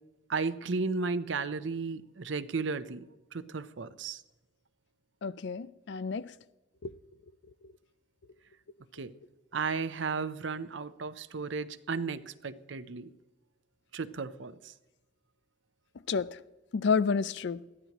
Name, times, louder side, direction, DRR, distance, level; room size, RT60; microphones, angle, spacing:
voice 1, 0.3-3.1 3.3-4.2 8.9-9.1 9.5-13.1 13.9-14.7, right 4 dB, 70° right, 0.7 m, -34 dB
voice 2, 5.2-6.3 6.8-6.9 16.1-16.4 16.7-17.6, left 5 dB, 60° left, 0.4 m, -30 dB
21.0 x 14.5 x 3.0 m
head